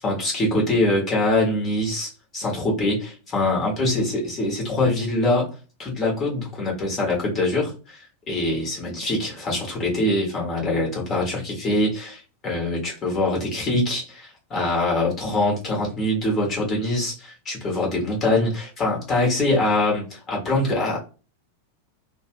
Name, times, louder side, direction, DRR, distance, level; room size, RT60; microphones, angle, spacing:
voice 1, 0.0-21.0, left 2 dB, 25° left, -2 dB, 1.1 m, -24 dB
2.5 x 2.2 x 3.0 m, 0.33 s
figure-of-eight pair, 90°, 0 cm